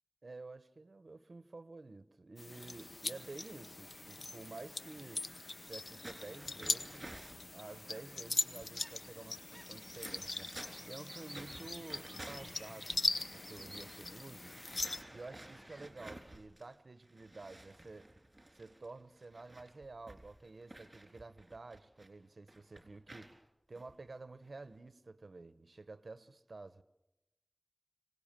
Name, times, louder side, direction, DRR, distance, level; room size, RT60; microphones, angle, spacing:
voice 1, 0.2-5.3 5.6-7.1 7.5-10.5 10.8-14.5 15.1-18.1 18.5-23.3 23.7-26.8, right 3 dB, 80° right, 0.9 m, -51 dB
sound 1, 2.4-15.0, left 3 dB, 70° left, 0.7 m, -41 dB
sound 2, 2.5-15.9, equal, 5° right, 0.9 m, -56 dB
sound 3, 6.0-7.5 8.2-8.3 8.5-10.9 11.3-16.7 17.0-22.1 22.5-23.3 23.7-23.9 24.4-24.7, right 1 dB, 35° right, 3.7 m, -53 dB
25.5 x 18.0 x 7.5 m
wide cardioid pair, 65°, 0 cm